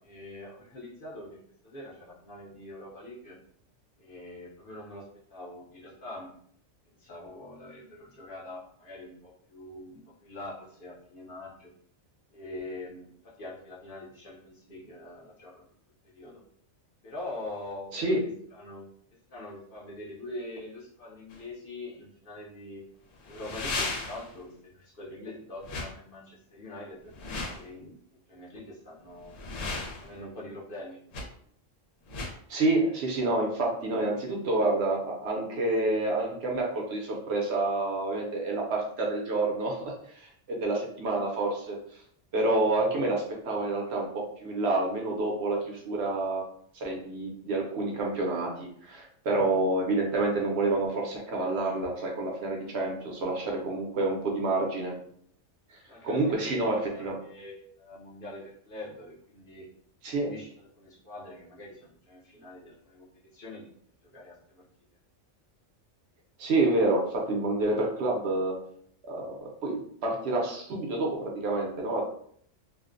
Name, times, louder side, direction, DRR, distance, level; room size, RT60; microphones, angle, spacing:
voice 1, 0.0-1.4 1.6-3.4 4.0-6.3 6.9-11.7 12.3-15.7 16.1-16.4 17.0-17.9 18.5-18.9 19.3-22.8 23.3-27.1 27.5-27.9 28.3-29.4 30.0-31.0 55.9-59.7 60.1-63.7 64.0-64.6, left 1 dB, 55° left, -5 dB, 0.7 m, -44 dB
sound 1, 21.3-21.4 23.2-24.4 25.6-25.9 27.1-27.6 29.2-30.2 31.1-31.2 32.1-32.3, left 3 dB, 90° left, 1.0 m, -35 dB
voice 2, 32.5-41.8 42.3-46.4 46.8-54.9 55.7-55.8 56.0-57.2 60.0-60.3 66.4-68.5 69.0-72.0, right 2 dB, 65° right, -1 dB, 0.8 m, -28 dB
2.5 x 2.0 x 2.4 m, 0.62 s
omnidirectional pair, 1.3 m